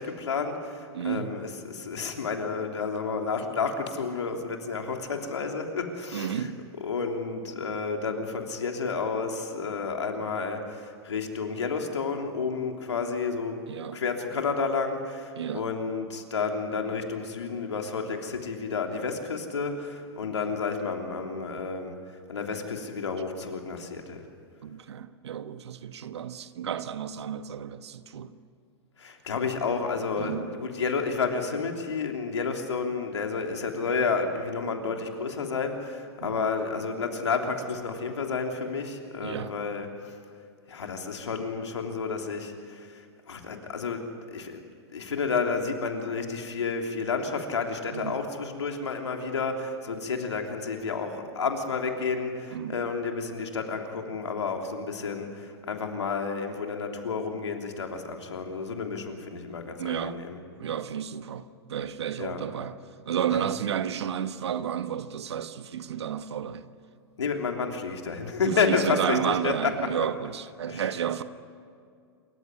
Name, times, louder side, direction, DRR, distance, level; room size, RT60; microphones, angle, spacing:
voice 1, 0.0-6.5 6.8-13.6 13.9-22.0 22.3-24.2 29.0-40.1 40.7-44.6 44.9-60.4 62.2-62.5 67.2-69.9 70.7-70.9, left 4 dB, 85° left, 3.3 m, -31 dB
voice 2, 0.9-1.4 6.1-6.6 13.7-14.0 15.4-15.6 20.2-20.3 24.6-28.3 30.2-30.5 36.2-36.4 39.2-39.5 47.9-48.2 52.5-52.8 59.8-60.3 60.6-62.8 63.1-66.7 68.4-71.2, right 9 dB, 75° right, 1.3 m, -32 dB
27.5 x 15.0 x 9.8 m
hypercardioid pair, 125°, 14 cm